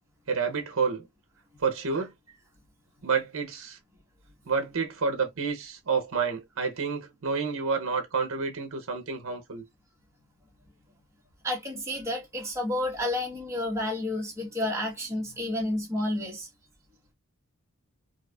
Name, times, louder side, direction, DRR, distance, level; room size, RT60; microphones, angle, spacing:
voice 1, 0.3-1.1 1.6-2.1 3.0-3.8 4.5-9.6, right 5 dB, 65° right, 0.7 m, -29 dB
voice 2, 11.4-16.5, left 1 dB, 15° right, 1.3 m, -30 dB
4.5 x 2.4 x 2.3 m
head